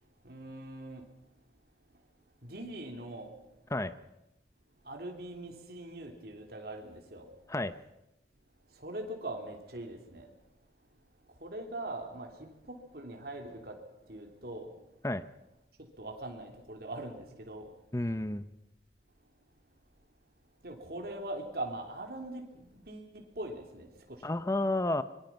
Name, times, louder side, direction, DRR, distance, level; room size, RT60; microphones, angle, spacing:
voice 1, 0.2-1.0 2.4-3.3 4.9-7.3 8.8-10.3 11.4-13.8 14.1-14.7 16.0-17.7 20.6-24.2, right 1 dB, 60° right, 2 dB, 3.3 m, -42 dB
voice 2, 17.9-18.5 24.2-25.0, left 2 dB, 15° left, 13 dB, 0.7 m, -31 dB
25.0 x 22.0 x 5.9 m, 0.90 s
head